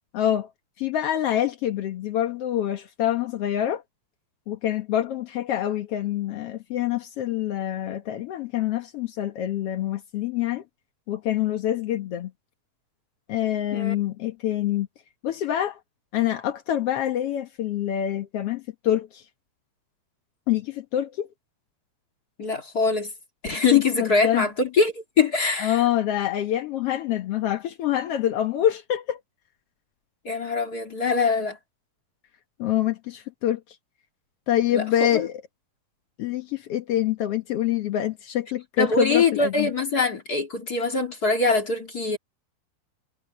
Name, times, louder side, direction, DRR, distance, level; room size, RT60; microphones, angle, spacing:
voice 1, 0.1-0.5 0.8-3.8 4.5-10.6 11.1-12.3 13.3-14.9 15.2-15.8 16.1-19.2 20.5-21.3 23.7-24.4 25.6-29.2 32.6-33.6 34.5-35.3 36.2-39.7, left 11 dB, 75° left, 1.4 m, -26 dB
voice 2, 22.4-23.1 23.4-25.8 30.2-31.6 34.7-34.8 35.1-35.3 38.8-42.2, left 4 dB, 30° left, 2.1 m, -23 dB
omnidirectional pair, 4.4 m